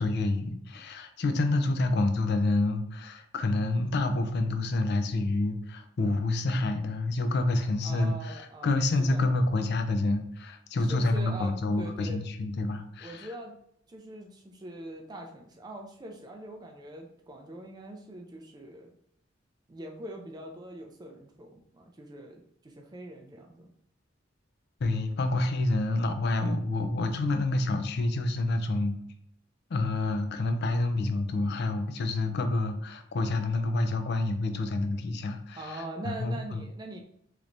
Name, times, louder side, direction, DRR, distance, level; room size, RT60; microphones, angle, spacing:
voice 1, 0.0-13.3 24.8-29.0 29.7-36.6, left 2 dB, 60° left, 7 dB, 0.4 m, -28 dB
voice 2, 7.8-9.2 10.8-12.2 13.0-13.5 13.9-18.9 19.7-23.7 35.6-37.0, right 1 dB, 20° right, 2 dB, 0.4 m, -43 dB
3.2 x 3.0 x 2.6 m, 0.72 s
head